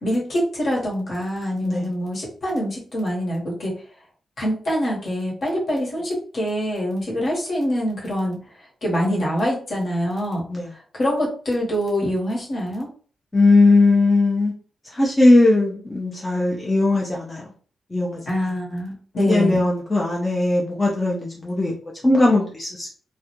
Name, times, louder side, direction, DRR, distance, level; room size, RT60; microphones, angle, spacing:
voice 1, 0.0-3.7 4.4-8.4 8.8-10.4 10.9-12.9 18.3-19.7, equal, 50° left, -3 dB, 1.0 m, -25 dB
voice 2, 9.0-9.4 10.5-10.7 13.3-14.5 14.9-17.4 17.9-18.2 19.2-21.7 22.0-22.9, left 2 dB, 15° left, -2 dB, 0.4 m, -18 dB
2.3 x 2.1 x 2.8 m, 0.42 s
wide cardioid pair, 145°, 0 cm